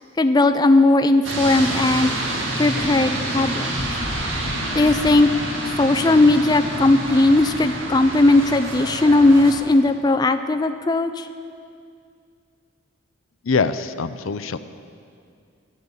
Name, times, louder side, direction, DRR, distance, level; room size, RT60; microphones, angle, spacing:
voice 1, 0.2-2.1 2.6-3.7 4.7-5.3 5.8-11.3, left 2 dB, 20° left, 9 dB, 0.4 m, -17 dB
sound 1, 1.2-9.5, right 1 dB, 75° right, 2.0 m, -27 dB
voice 2, 13.5-14.6, left 4 dB, 90° left, 12 dB, 0.6 m, -23 dB
14.5 x 9.6 x 7.2 m, 2.3 s
head